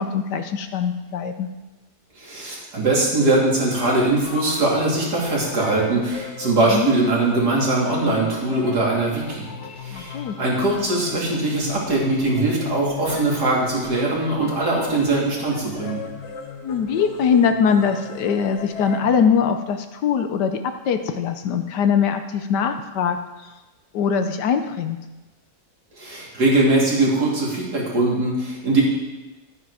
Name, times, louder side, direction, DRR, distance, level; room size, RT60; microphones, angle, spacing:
voice 1, 0.0-1.5 6.7-6.9 9.9-10.3 16.6-23.2 23.9-25.0, left 7 dB, 80° left, 7 dB, 1.4 m, -22 dB
voice 2, 2.2-9.5 9.8-16.0 26.0-28.8, right 2 dB, 70° right, -4 dB, 3.5 m, -21 dB
sound 1, 3.6-19.7, left 5 dB, 50° left, 1.1 m, -36 dB
12.0 x 9.6 x 4.9 m, 1.1 s
omnidirectional pair, 1.8 m